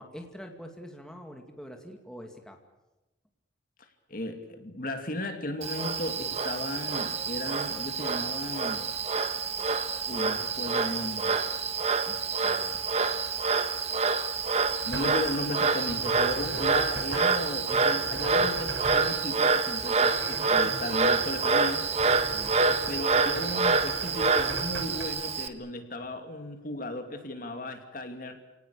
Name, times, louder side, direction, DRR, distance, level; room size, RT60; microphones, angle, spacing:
voice 1, 0.0-2.6 22.3-22.6, equal, 5° left, 3 dB, 2.1 m, -44 dB
voice 2, 4.1-8.9 10.1-11.4 12.1-12.9 14.8-21.8 22.7-28.4, left 1 dB, 50° left, 6 dB, 2.6 m, -36 dB
Frog, 5.6-25.5, right 4 dB, 35° right, 1.3 m, -27 dB
sound 1, 14.3-25.0, right 1 dB, 90° right, 5.6 m, -40 dB
29.0 x 18.5 x 8.5 m, 1.0 s
head